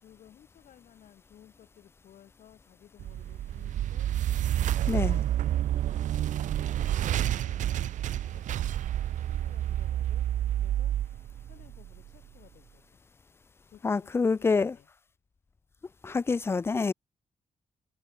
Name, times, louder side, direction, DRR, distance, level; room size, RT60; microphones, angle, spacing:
voice 1, 0.0-4.2 4.8-5.7 6.0-6.8 7.3-8.7 9.2-10.3 10.6-11.0 11.4-13.0 13.7-14.9, left 10 dB, 75° left, 4.5 m, -57 dB
sound 1, 3.0-12.2, right 12 dB, 85° right, 0.7 m, -29 dB
voice 2, 4.9-5.2 13.8-14.7 16.0-16.9, left 4 dB, 20° left, 0.5 m, -26 dB
wide cardioid pair, 180°, 13 cm